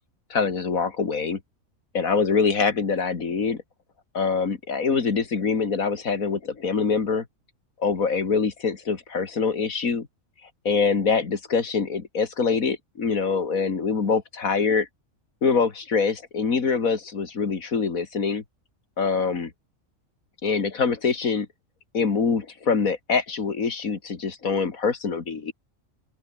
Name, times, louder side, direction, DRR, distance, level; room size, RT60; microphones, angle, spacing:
voice 1, 0.3-1.4 1.9-3.6 4.1-7.3 7.8-10.1 10.6-14.9 15.4-18.4 19.0-19.5 20.4-21.5 21.9-25.5, left 5 dB, 80° left, 2.6 m, -24 dB
open air
omnidirectional pair, 1.4 m